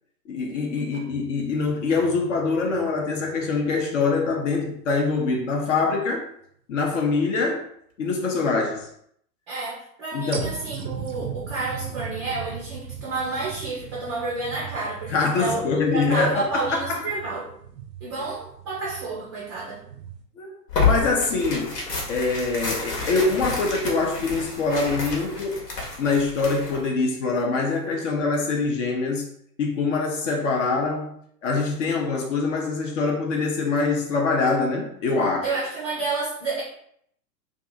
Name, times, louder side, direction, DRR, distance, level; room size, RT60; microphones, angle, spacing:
voice 1, 0.3-6.3 6.7-7.7 8.0-8.9 10.1-10.5 15.1-17.0 20.4-21.7 22.1-25.6 26.0-29.3 29.6-31.1 31.4-35.5, left 4 dB, 50° left, 0.6 m, -24 dB
sound 1, 1.1-4.8 5.3-5.4 10.3-20.2, right 7 dB, 90° right, 0.5 m, -39 dB
voice 2, 9.5-17.5 18.0-19.8 35.4-36.6, right 3 dB, 20° right, 0.4 m, -30 dB
Tearing, 20.7-26.9, left 4 dB, 70° left, 1.1 m, -29 dB
2.6 x 2.4 x 2.6 m
figure-of-eight pair, 105°, 50 cm